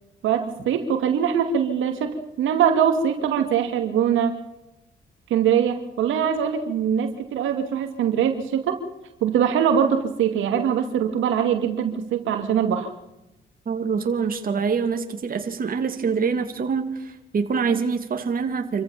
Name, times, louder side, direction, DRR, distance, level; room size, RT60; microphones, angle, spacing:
voice 1, 0.2-4.4 5.3-8.8 9.2-12.9, right 8 dB, 80° right, 6 dB, 2.4 m, -22 dB
voice 2, 13.7-18.8, right 5 dB, 45° right, 5 dB, 2.9 m, -25 dB
27.5 x 14.5 x 7.2 m, 0.95 s
cardioid pair, 90°, 20 cm